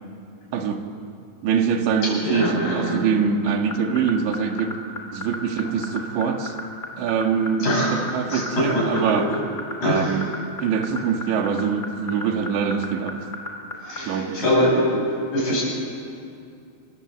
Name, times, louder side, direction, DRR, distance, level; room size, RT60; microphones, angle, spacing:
voice 1, 1.4-4.8 5.1-6.5 7.0-9.3 9.8-10.2 10.6-13.2 14.1-14.4, right 6 dB, 85° right, 4 dB, 4.1 m, -23 dB
voice 2, 2.2-3.0 7.6-7.9 8.3-9.0 9.8-10.1 13.8-15.6, left 1 dB, 50° left, -3 dB, 9.6 m, -23 dB
sound 1, 3.5-14.0, left 2 dB, 15° left, 2.4 m, -32 dB
28.0 x 24.0 x 8.0 m, 2.5 s
omnidirectional pair, 5.0 m